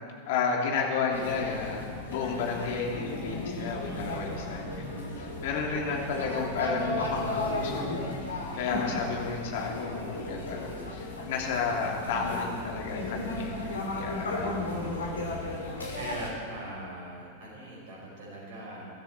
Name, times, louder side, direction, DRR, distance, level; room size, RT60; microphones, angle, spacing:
voice 1, 0.2-8.1 8.5-13.6 13.9-14.8, left 5 dB, 55° left, 0 dB, 3.0 m, -32 dB
sound 1, 1.1-16.3, left 2 dB, 75° left, 3.5 m, -35 dB
voice 2, 3.8-4.3 5.4-5.8 8.8-9.2 14.7-15.5 15.9-18.9, right 1 dB, 50° right, -3 dB, 5.0 m, -42 dB
22.5 x 12.5 x 4.4 m, 2.1 s
figure-of-eight pair, 90°, 0 cm